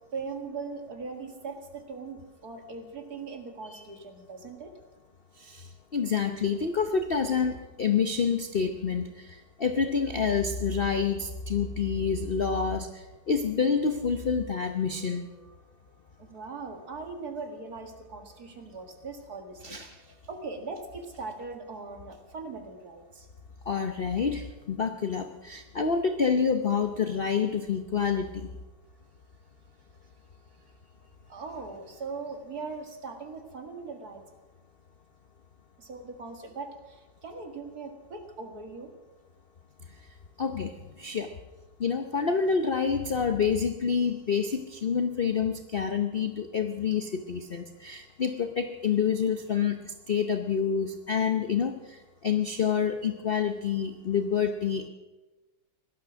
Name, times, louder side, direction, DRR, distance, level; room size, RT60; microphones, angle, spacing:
voice 1, 0.0-4.7 16.2-19.8 20.0-23.3 31.3-34.2 35.8-38.9, right 4 dB, 50° right, 4 dB, 2.3 m, -40 dB
voice 2, 5.4-15.3 19.6-20.0 23.7-28.5 40.4-40.7 41.0-41.3 41.8-54.9, left 6 dB, 50° left, 7 dB, 0.6 m, -28 dB
18.0 x 12.5 x 6.3 m, 1.1 s
omnidirectional pair, 2.1 m